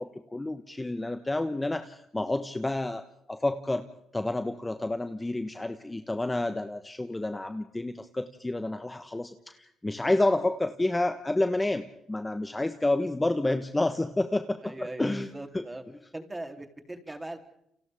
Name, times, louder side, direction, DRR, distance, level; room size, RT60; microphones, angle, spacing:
voice 1, 0.0-3.9 4.1-14.7 15.0-15.3 15.5-15.6, left 2 dB, 15° left, 8 dB, 1.3 m, -29 dB
voice 2, 14.6-15.8 16.1-17.4, right 1 dB, 15° right, 5 dB, 3.5 m, -39 dB
30.0 x 28.0 x 3.7 m, 0.76 s
cardioid pair, 90°, 0 cm